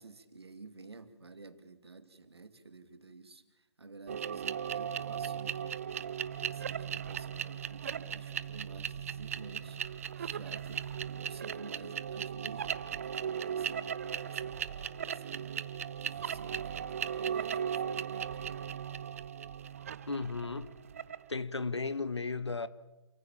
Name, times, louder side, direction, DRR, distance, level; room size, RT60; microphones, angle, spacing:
voice 1, 0.0-5.8 6.4-9.8 10.2-13.9 14.2-14.6 15.0-15.6 16.0-18.7, right 3 dB, 65° right, 2.6 m, -51 dB
sound 1, 4.1-21.3, right 8 dB, 30° right, 0.6 m, -37 dB
voice 2, 20.1-20.7 21.3-22.7, left 4 dB, 70° left, 1.4 m, -35 dB
28.5 x 15.0 x 7.3 m
figure-of-eight pair, 145°, 15 cm